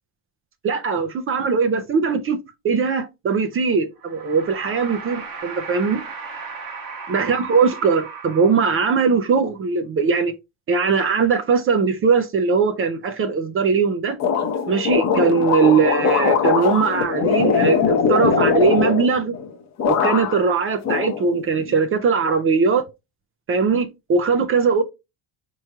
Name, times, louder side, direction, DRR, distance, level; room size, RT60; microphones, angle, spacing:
voice 1, 0.6-2.4 2.6-6.0 7.1-10.3 10.7-14.2 14.7-19.4 19.9-22.8 23.5-24.8, right 5 dB, 30° right, 0.3 m, -20 dB
sound 1, 4.0-9.1, right 5 dB, 45° right, 1.1 m, -36 dB
sound 2, 14.2-19.5 19.8-20.5 20.8-21.7, left 6 dB, 35° left, 0.7 m, -21 dB
4.3 x 3.0 x 2.3 m
cardioid pair, 160°, 47 cm